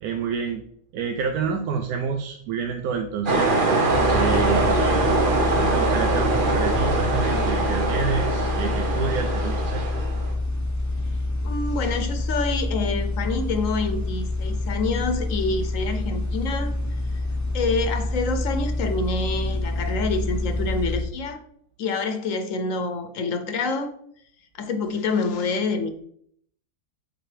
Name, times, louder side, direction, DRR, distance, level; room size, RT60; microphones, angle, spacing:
voice 1, 0.0-0.6 0.9-3.6 4.1-5.2 5.7-9.8, right 6 dB, 85° right, 5 dB, 1.1 m, -28 dB
sound 1, 3.3-10.3, right 2 dB, 40° right, 1.0 m, -23 dB
sound 2, 3.9-21.0, left 2 dB, 30° left, 0.3 m, -27 dB
voice 2, 11.4-16.7 17.1-17.2 17.5-21.4 21.8-23.9 24.5-25.9, left 3 dB, 70° left, 8 dB, 1.0 m, -27 dB
7.8 x 3.9 x 3.3 m, 0.66 s
omnidirectional pair, 1.5 m